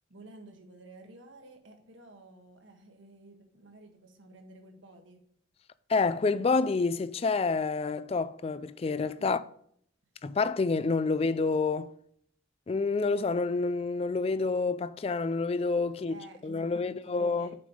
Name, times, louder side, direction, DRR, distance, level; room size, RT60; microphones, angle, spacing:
voice 1, 0.1-5.2 16.1-17.5, right 2 dB, 75° right, 1.4 m, -52 dB
voice 2, 5.9-9.4 10.2-11.9 12.7-16.2 16.4-17.6, left 4 dB, 30° left, 0.3 m, -28 dB
6.8 x 5.3 x 5.0 m
head